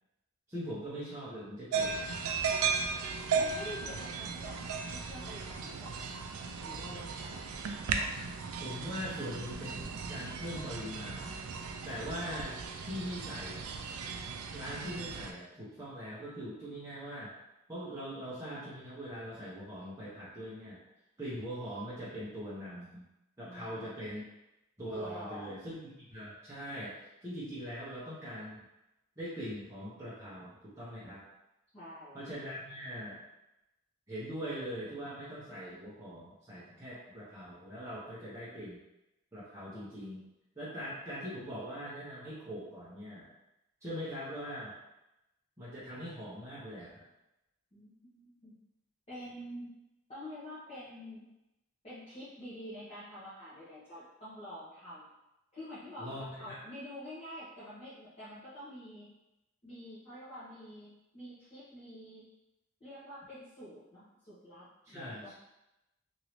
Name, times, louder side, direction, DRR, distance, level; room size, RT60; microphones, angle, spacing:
voice 1, 0.5-2.0 8.6-11.4 11.8-12.5 12.8-13.7 14.5-17.3 17.7-20.8 21.2-23.0 23.4-24.2 24.8-28.6 29.2-31.2 32.1-33.2 34.1-38.8 39.3-40.2 40.6-43.3 43.8-44.8 45.6-47.0 56.0-56.6 64.8-65.3, equal, 15° right, -11 dB, 0.7 m, -41 dB
sound 1, 1.7-15.3, right 5 dB, 80° right, 0.4 m, -36 dB
voice 2, 3.3-6.1 6.6-7.4 23.4-23.9 24.9-25.5 31.7-32.2 47.7-48.5 49.1-49.8 50.1-51.3 51.8-55.2 55.5-59.1 59.6-62.3 62.8-65.3, equal, 30° left, -14 dB, 1.0 m, -47 dB
3.0 x 2.7 x 3.1 m, 0.93 s
head